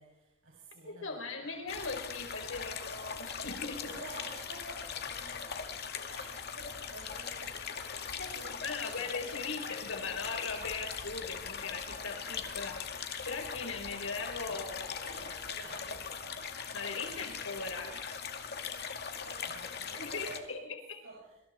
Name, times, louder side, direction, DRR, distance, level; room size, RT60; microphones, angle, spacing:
voice 1, 0.0-1.6 3.9-9.3 14.5-16.5 17.1-17.4 19.1-20.7 21.0-21.3, right 2 dB, 75° right, -3 dB, 6.4 m, -51 dB
voice 2, 0.8-4.0 8.2-8.4 8.6-14.9 16.7-18.2 19.9-20.6, left 4 dB, 70° left, 4 dB, 4.5 m, -39 dB
sound 1, 1.7-20.4, left 6 dB, 50° left, 2.2 m, -40 dB
26.5 x 25.0 x 4.4 m, 0.90 s
head